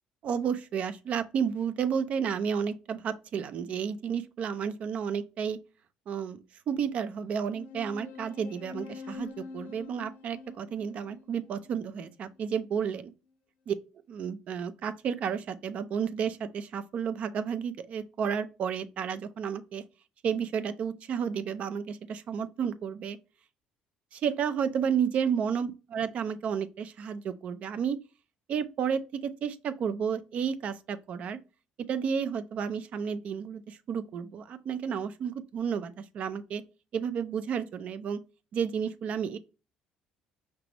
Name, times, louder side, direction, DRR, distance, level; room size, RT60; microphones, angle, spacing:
voice 1, 0.2-5.6 6.1-6.4 6.7-13.1 13.7-13.8 14.1-19.8 20.2-23.2 24.1-28.0 28.5-31.4 31.9-36.6 36.9-38.2 38.5-39.4, right 7 dB, 55° right, 0.5 m, -31 dB
sound 1, 7.5-12.5, left 4 dB, 80° left, 0.8 m, -45 dB
5.0 x 3.3 x 2.9 m
cardioid pair, 100°, 3 cm